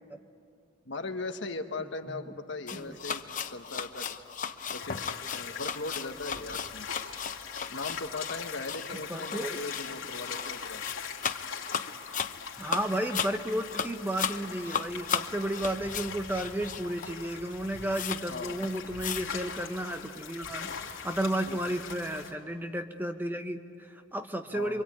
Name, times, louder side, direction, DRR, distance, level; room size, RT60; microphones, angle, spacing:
voice 1, 0.8-3.2 3.5-4.1 4.7-5.0 5.3-6.9 7.7-10.8 18.3-18.6 21.4-21.6 24.5-24.8, left 3 dB, 60° left, 6 dB, 1.4 m, -38 dB
voice 2, 1.8-2.4 2.7-3.0 9.1-9.6 12.6-24.8, right 1 dB, 10° right, 7 dB, 0.9 m, -33 dB
sound 1, 2.7-17.2 17.5-17.6 17.9-18.3 18.5-19.4, left 7 dB, 40° left, 0.8 m, -36 dB
sound 2, 4.7-22.3, left 6 dB, 90° left, 2.8 m, -42 dB
27.5 x 24.0 x 8.8 m, 2.4 s
head